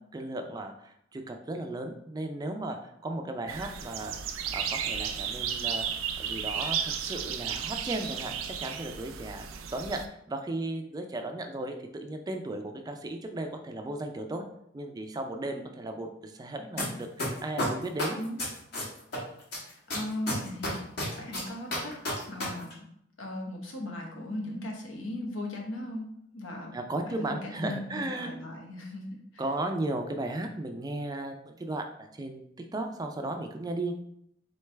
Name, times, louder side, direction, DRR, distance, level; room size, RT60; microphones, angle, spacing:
voice 1, 0.1-4.1 4.5-5.8 6.2-14.4 14.7-18.2 26.7-28.3 29.4-33.9, right 2 dB, 20° right, 5 dB, 0.3 m, -35 dB
sound 1, 3.5-10.1, right 7 dB, 90° right, 0.4 m, -34 dB
sound 2, 16.8-16.9 17.2-19.2 19.5-22.4 22.7-22.8, left 1 dB, 55° left, 1.5 m, -31 dB
voice 2, 19.6-20.8 21.1-22.0 22.3-22.9 23.2-26.8 27.0-29.2, left 1 dB, 80° left, 0 dB, 1.0 m, -38 dB
3.9 x 3.3 x 3.2 m, 0.72 s
head